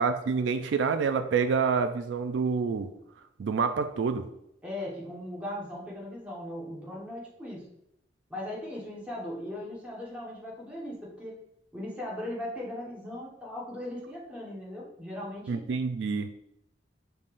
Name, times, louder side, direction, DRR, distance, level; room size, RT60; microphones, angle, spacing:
voice 1, 0.0-2.9 3.4-4.3 15.5-16.3, right 5 dB, 90° right, 9 dB, 0.3 m, -27 dB
voice 2, 4.6-7.7 8.3-11.4 11.7-15.6, left 1 dB, 5° right, -5 dB, 1.3 m, -38 dB
5.4 x 3.4 x 2.5 m, 0.79 s
head